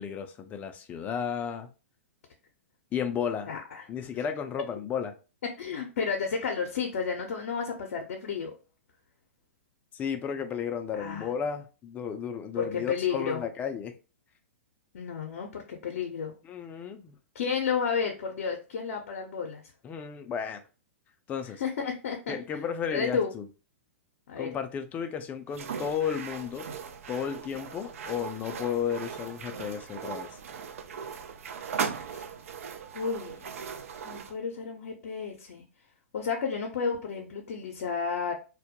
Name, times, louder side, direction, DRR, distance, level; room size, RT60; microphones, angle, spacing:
voice 1, 0.0-1.7 2.9-3.5 3.9-5.1 9.9-13.9 16.5-17.1 19.8-20.6 21.3-21.6 22.3-23.5 24.4-26.7 27.1-30.3, left 7 dB, 20° left, 7 dB, 0.3 m, -33 dB
voice 2, 3.5-3.8 5.4-8.5 11.0-11.3 12.6-13.5 14.9-16.4 17.3-19.6 21.6-22.4 22.9-23.3 24.3-24.5 32.1-32.2 32.9-33.5 34.0-35.6 36.1-38.3, left 6 dB, 70° left, 1 dB, 0.6 m, -32 dB
sound 1, 25.5-34.4, right 6 dB, 75° right, 0.4 m, -38 dB
2.2 x 2.0 x 2.8 m, 0.33 s
hypercardioid pair, 130°, 7 cm